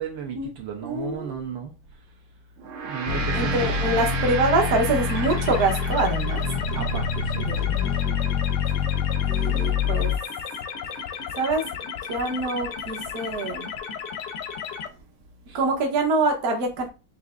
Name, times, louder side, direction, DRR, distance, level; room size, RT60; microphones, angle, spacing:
voice 1, 0.0-1.7 2.8-3.7 6.7-7.5 15.5-15.6, right 8 dB, 75° right, 1.4 m, -34 dB
voice 2, 0.8-1.4 3.3-6.4 7.4-7.7 8.0-8.2 9.3-10.1 11.4-11.6 12.1-13.7 15.5-16.9, right 2 dB, 55° right, 1.2 m, -25 dB
Gong, 2.6-7.2, right 5 dB, 90° right, 1.7 m, -33 dB
sound 1, 3.1-10.2, left 7 dB, 70° left, 0.9 m, -26 dB
sound 2, 5.1-14.9, left 7 dB, 90° left, 1.6 m, -34 dB
5.9 x 2.6 x 2.4 m
omnidirectional pair, 2.3 m